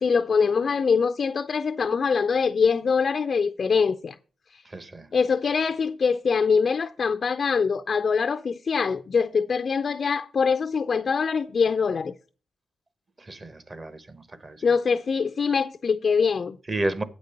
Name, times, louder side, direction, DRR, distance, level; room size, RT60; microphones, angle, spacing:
voice 1, 0.0-4.2 4.5-4.6 5.1-12.1 14.6-16.6, left 5 dB, 50° left, 0.4 m, -23 dB
voice 2, 4.6-5.1 13.2-14.6 16.7-17.0, right 2 dB, 30° right, 1.0 m, -32 dB
8.4 x 5.2 x 6.6 m
cardioid pair, 85°, 0 cm